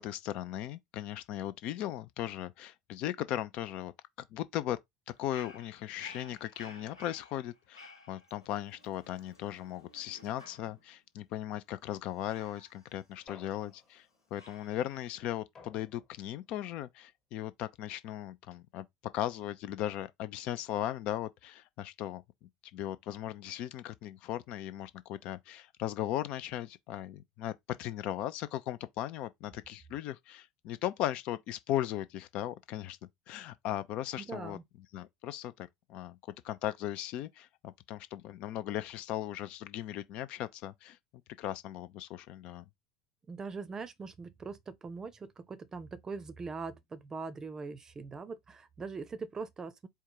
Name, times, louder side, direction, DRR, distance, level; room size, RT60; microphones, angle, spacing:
voice 1, 0.0-3.9 4.3-4.8 5.2-14.1 14.3-18.9 19.1-22.2 22.7-33.0 33.3-34.6 34.9-36.2 36.4-41.0 41.4-42.6, left 12 dB, 50° left, 0.5 m, -37 dB
Dog, 5.1-11.0 12.3-13.8 14.4-15.1, left 2 dB, 80° left, 1.4 m, -55 dB
sound 1, 13.3-14.3 15.6-16.4, left 5 dB, 25° left, 1.3 m, -56 dB
voice 2, 34.2-34.6 43.3-49.9, right 4 dB, 25° right, 0.7 m, -42 dB
4.5 x 2.3 x 4.5 m
figure-of-eight pair, 70°, 2 cm